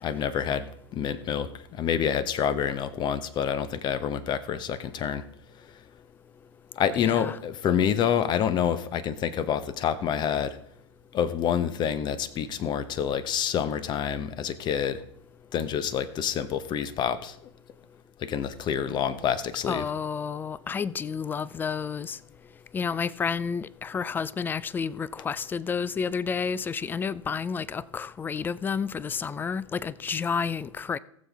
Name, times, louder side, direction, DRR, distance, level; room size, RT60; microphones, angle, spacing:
voice 1, 0.0-5.2 6.8-10.6 11.1-15.0 15.5-17.4 18.2-19.8, left 8 dB, 30° left, 0.9 m, -27 dB
voice 2, 7.0-7.4 19.7-22.2 22.7-31.0, left 6 dB, 15° left, 0.4 m, -30 dB
19.5 x 7.2 x 3.5 m
hypercardioid pair, 100°, 15 cm